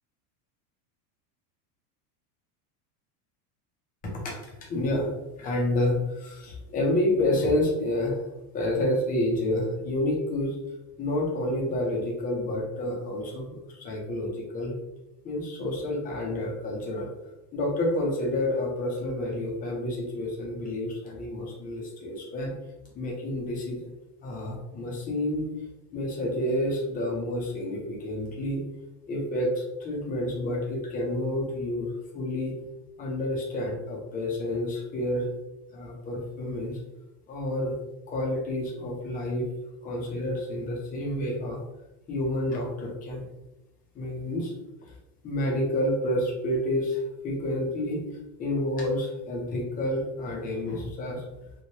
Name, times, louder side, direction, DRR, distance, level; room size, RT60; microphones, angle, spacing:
voice 1, 4.0-5.1 5.4-8.3 8.5-10.6 11.0-14.8 15.2-17.1 17.5-22.5 22.9-23.9 24.2-25.5 25.9-28.6 29.1-32.5 33.0-35.3 35.7-36.8 37.3-37.7 38.1-39.5 39.8-41.6 42.1-43.3 43.9-44.5 44.8-44.9 45.2-48.0 48.4-51.2, left 1 dB, 20° left, -1 dB, 0.4 m, -29 dB
3.1 x 2.1 x 2.7 m, 0.97 s
supercardioid pair, 145°, 47 cm